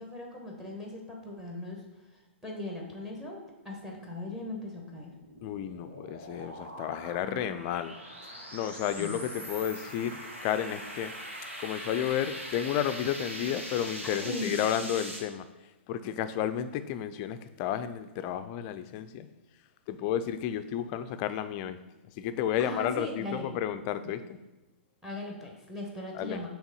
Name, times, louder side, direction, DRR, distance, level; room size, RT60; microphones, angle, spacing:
voice 1, 0.0-1.8 2.4-5.1 7.2-7.4 9.0-9.2 14.0-14.8 22.6-23.5 24.0-24.1 25.0-26.5, left 1 dB, 5° right, 0 dB, 1.2 m, -39 dB
sound 1, 4.6-15.2, right 1 dB, 90° right, 1.5 m, -42 dB
voice 2, 5.4-7.9 8.2-11.1 11.6-15.5 15.9-19.3 19.9-21.8 22.2-24.4 26.1-26.4, left 10 dB, 35° left, 12 dB, 0.4 m, -32 dB
6.1 x 3.4 x 5.4 m, 1.1 s
figure-of-eight pair, 115°, 7 cm